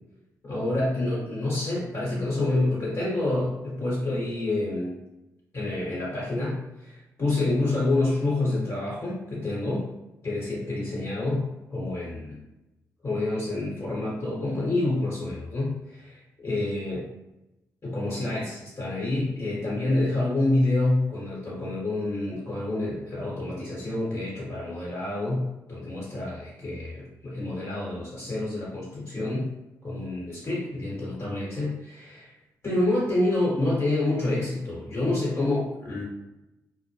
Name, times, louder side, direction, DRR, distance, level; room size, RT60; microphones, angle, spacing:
voice 1, 0.4-5.0 5.5-9.9 10.2-12.4 13.0-17.1 17.8-29.5 29.8-32.3 32.6-36.0, left 2 dB, 45° left, -7 dB, 1.2 m, -28 dB
2.1 x 2.1 x 3.1 m, 0.95 s
supercardioid pair, 45°, 7 cm